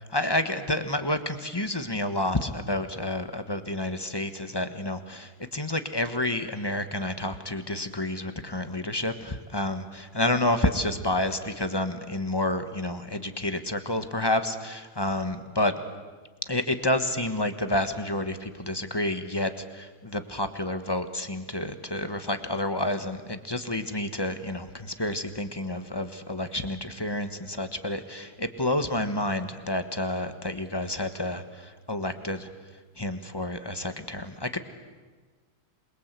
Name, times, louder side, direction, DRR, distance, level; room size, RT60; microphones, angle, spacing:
voice 1, 0.1-15.7 16.5-32.5 33.0-34.6, left 1 dB, 15° left, 8 dB, 1.3 m, -29 dB
27.5 x 22.5 x 8.2 m, 1.4 s
omnidirectional pair, 1.8 m